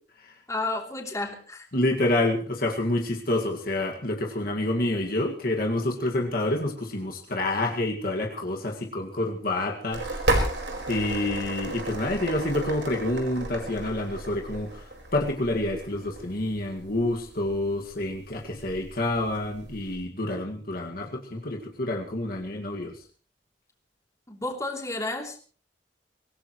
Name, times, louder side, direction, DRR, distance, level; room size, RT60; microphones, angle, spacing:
voice 1, 0.5-1.7 24.3-25.4, left 2 dB, 20° left, 2 dB, 3.0 m, -31 dB
voice 2, 1.7-10.2 10.9-23.0, left 1 dB, 55° left, 1 dB, 2.0 m, -28 dB
sound 1, 9.9-20.0, right 2 dB, 80° right, 4.5 m, -33 dB
24.5 x 17.5 x 3.1 m, 0.39 s
head